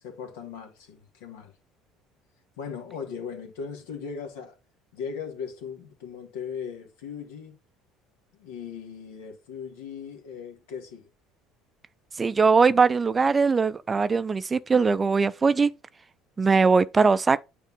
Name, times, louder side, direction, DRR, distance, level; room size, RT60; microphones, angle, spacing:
voice 1, 0.0-1.5 2.6-4.5 4.9-7.6 8.3-11.1, left 6 dB, 75° left, 1.8 m, -38 dB
voice 2, 12.2-15.7 16.4-17.4, right 4 dB, 25° right, 0.5 m, -21 dB
9.0 x 3.3 x 5.2 m
hypercardioid pair, 65°, 0 cm